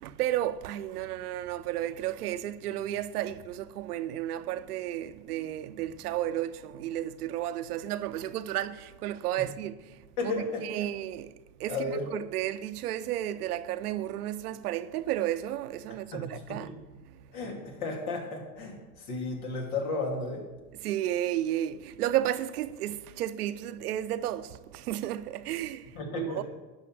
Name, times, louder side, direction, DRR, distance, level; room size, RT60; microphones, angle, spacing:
voice 1, 0.0-9.8 10.2-11.3 11.6-16.7 17.0-17.1 20.8-26.4, right 12 dB, 85° right, 0.8 m, -33 dB
voice 2, 10.2-10.7 11.7-12.1 16.1-16.7 17.3-20.5 25.9-26.4, left 3 dB, 75° left, 3.1 m, -34 dB
11.5 x 5.8 x 7.5 m
hypercardioid pair, 100°, 45 cm